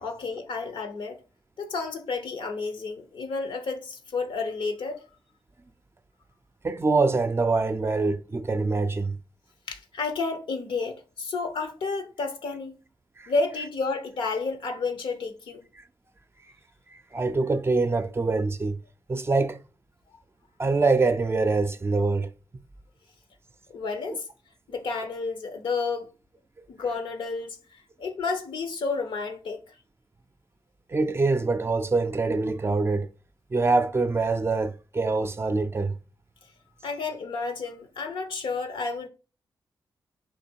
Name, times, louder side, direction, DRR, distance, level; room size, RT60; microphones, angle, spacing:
voice 1, 0.0-1.2 1.6-5.0 9.7-12.8 13.3-15.6 23.7-24.3 24.7-26.1 26.7-27.6 28.0-29.6 36.8-39.1, left 4 dB, 75° left, 0.8 m, -31 dB
voice 2, 6.6-9.2 13.2-13.3 16.9-18.8 19.1-19.6 20.6-22.3 24.1-24.2 30.9-33.1 33.5-36.0, right 3 dB, 30° right, 0.5 m, -24 dB
4.3 x 2.8 x 4.4 m
cardioid pair, 55°, 9 cm